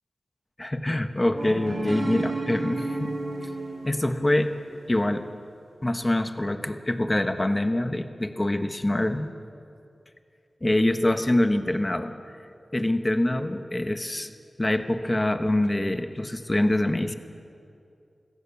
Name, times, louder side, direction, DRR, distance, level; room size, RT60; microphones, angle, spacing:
voice 1, 0.6-3.2 3.8-4.5 4.9-5.3 5.8-9.3 10.6-12.1 12.7-14.3 14.6-17.1, left 1 dB, 25° left, 8 dB, 1.3 m, -25 dB
sound 1, 1.3-4.5, right 2 dB, 85° right, 6.2 m, -32 dB
26.0 x 16.0 x 7.1 m, 2.5 s
wide cardioid pair, 65°, 0 cm